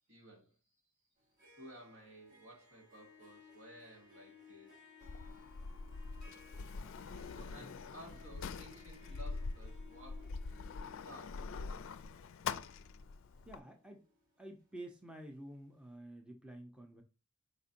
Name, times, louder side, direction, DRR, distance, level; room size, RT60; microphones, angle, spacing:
voice 1, 0.1-0.6 1.6-4.8 7.3-10.4 10.8-11.5, right 1 dB, 75° right, 2.3 m, -55 dB
Harp, 1.2-15.2, left 5 dB, 40° right, 2.2 m, -60 dB
Sliding door, 5.0-13.6, left 4 dB, 65° left, 0.4 m, -44 dB
voice 2, 13.5-14.0 14.4-17.0, right 1 dB, 5° right, 0.6 m, -50 dB
5.1 x 4.2 x 2.5 m
head